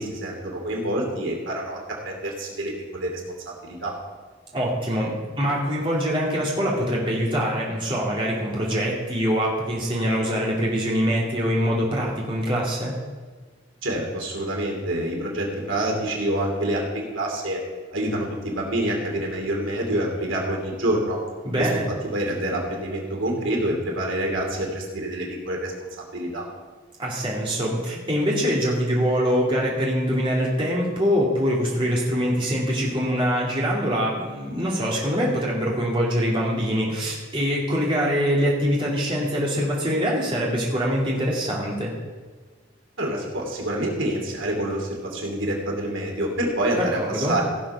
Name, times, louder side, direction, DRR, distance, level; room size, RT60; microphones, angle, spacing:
voice 1, 0.0-3.2 3.6-3.9 13.8-17.6 17.9-21.2 21.6-21.7 22.0-25.7 26.1-26.4 43.0-47.4, right 1 dB, 80° right, 0 dB, 2.7 m, -27 dB
voice 2, 4.5-12.9 21.4-21.9 27.0-41.9 46.8-47.3, equal, 25° right, -5 dB, 2.4 m, -24 dB
16.5 x 6.2 x 5.8 m, 1.5 s
head